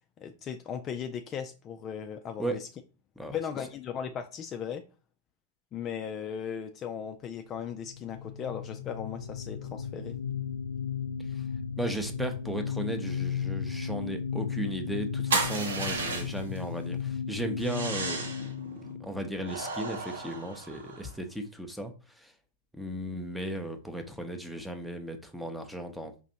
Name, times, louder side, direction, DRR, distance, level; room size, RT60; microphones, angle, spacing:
voice 1, 0.2-2.7 3.3-4.8 5.7-10.2, left 8 dB, 30° left, 0.4 m, -37 dB
sound 1, 7.8-20.3, left 7 dB, 85° left, 0.5 m, -35 dB
voice 2, 11.8-18.5 18.8-22.3 22.7-26.2, right 1 dB, ahead, 0.7 m, -36 dB
sound 2, 15.3-16.6 17.6-18.5 19.4-21.1, right 3 dB, 70° right, 1.1 m, -33 dB
4.9 x 2.7 x 2.7 m
figure-of-eight pair, 95°, 0 cm